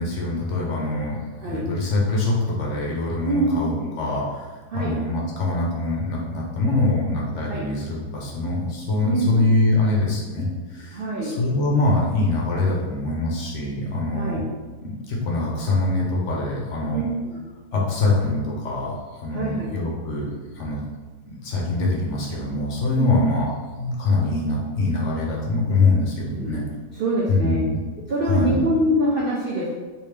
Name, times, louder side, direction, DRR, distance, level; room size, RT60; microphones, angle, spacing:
voice 1, 0.0-3.7 4.0-14.4 14.8-17.0 17.7-20.3 20.5-20.8 21.3-23.5 23.8-26.6 27.3-27.8 28.2-28.7, left 2 dB, 60° left, -3 dB, 0.9 m, -24 dB
voice 2, 3.2-3.9 4.7-5.0 7.5-7.6 9.0-9.5 10.9-11.4 14.1-14.4 16.9-17.4 19.3-19.9 20.2-20.3 23.0-23.2 26.3-26.7 26.9-27.6 28.1-29.7, right 1 dB, 80° right, -6 dB, 0.4 m, -25 dB
3.4 x 2.8 x 3.2 m, 1.3 s
omnidirectional pair, 1.7 m